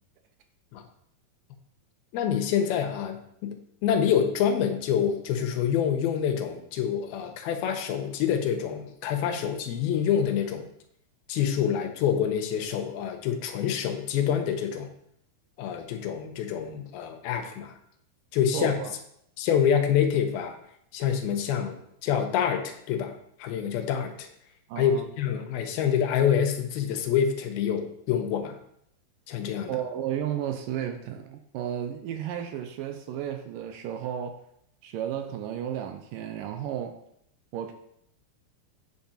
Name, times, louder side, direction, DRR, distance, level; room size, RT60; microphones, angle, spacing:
voice 1, 2.1-3.6 3.8-10.7 11.3-14.9 15.6-17.8 18.3-18.8 19.4-20.6 20.9-23.1 23.4-24.3 24.8-28.6 29.3-29.7, left 8 dB, 90° left, 6 dB, 2.8 m, -26 dB
voice 2, 18.5-18.9 24.7-25.1 29.7-34.4 34.8-37.0 37.5-37.7, right 10 dB, 75° right, 6 dB, 2.1 m, -33 dB
8.7 x 7.1 x 4.3 m, 0.73 s
omnidirectional pair, 4.3 m